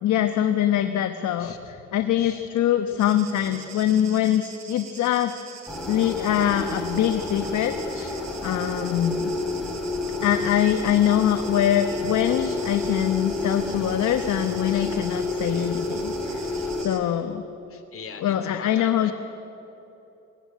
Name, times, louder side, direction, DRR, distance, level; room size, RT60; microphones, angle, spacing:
voice 1, 0.0-1.5 1.9-5.3 5.9-7.7 8.0-8.2 8.4-9.3 10.2-16.4 16.8-17.4 18.2-19.1, left 11 dB, 75° left, 7 dB, 1.1 m, -23 dB
voice 2, 1.4-1.9 2.2-2.5 2.9-3.0 7.9-8.4 10.0-10.4 12.3-12.7 13.7-14.0 15.5-15.6 16.4-16.7 17.7-19.1, left 6 dB, 45° left, 6 dB, 2.8 m, -44 dB
sound 1, 3.0-17.0, right 6 dB, 60° right, 2.7 m, -43 dB
sound 2, 5.7-16.9, left 2 dB, ahead, 4.3 m, -30 dB
21.5 x 17.5 x 9.2 m, 2.9 s
cardioid pair, 90°, 30 cm